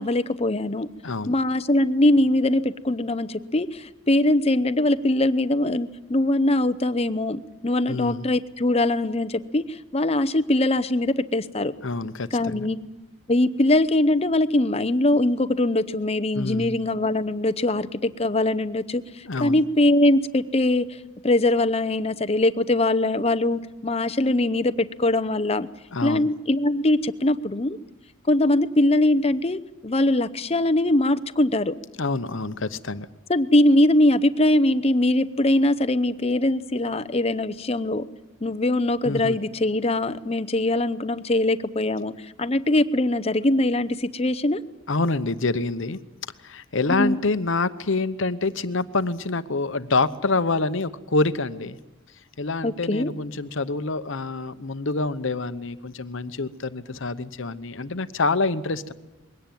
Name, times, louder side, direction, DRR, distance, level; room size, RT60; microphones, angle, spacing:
voice 1, 0.0-0.9 1.3-11.7 12.3-12.8 13.3-20.9 21.2-25.7 26.0-27.8 28.3-31.8 33.3-38.0 38.4-42.1 42.4-44.6 46.9-47.2 52.6-53.1, left 1 dB, 30° left, 13 dB, 0.8 m, -22 dB
voice 2, 7.9-8.3 11.8-12.7 16.3-16.7 19.3-19.6 25.9-26.3 32.0-33.1 39.0-39.4 44.9-46.0 46.4-51.8 52.4-58.9, left 3 dB, 60° left, 12 dB, 0.9 m, -26 dB
22.0 x 17.5 x 9.2 m, 1.0 s
head